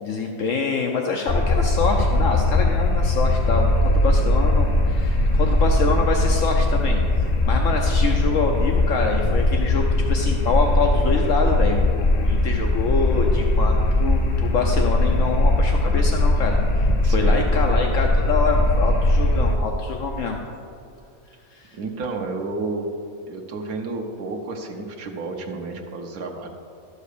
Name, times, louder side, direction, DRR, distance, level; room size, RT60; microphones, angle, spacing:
voice 1, 0.0-16.6 17.1-20.4 21.5-21.8, left 4 dB, 65° left, 2 dB, 1.1 m, -25 dB
sound 1, 1.3-19.6, left 1 dB, 40° left, 0.6 m, -20 dB
voice 2, 4.0-4.4 17.0-17.4 21.7-22.9 23.3-26.5, right 3 dB, 85° right, 2 dB, 1.4 m, -31 dB
12.5 x 5.1 x 6.7 m, 2.6 s
omnidirectional pair, 1.5 m